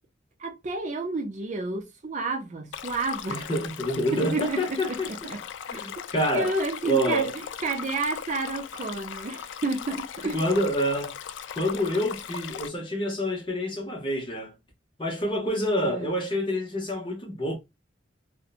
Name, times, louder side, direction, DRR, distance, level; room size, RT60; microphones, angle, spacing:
voice 1, 0.4-3.4 4.1-5.4 5.9-6.0 6.3-10.4 15.8-16.2, right 3 dB, 40° right, 0.5 m, -31 dB
Stream, 2.7-12.7, left 8 dB, 75° left, 0.3 m, -38 dB
voice 2, 3.3-5.3 5.7-6.5 6.8-7.3 10.3-11.2 11.6-14.5 15.0-17.5, equal, 25° left, 0.9 m, -27 dB
2.8 x 2.1 x 2.4 m
head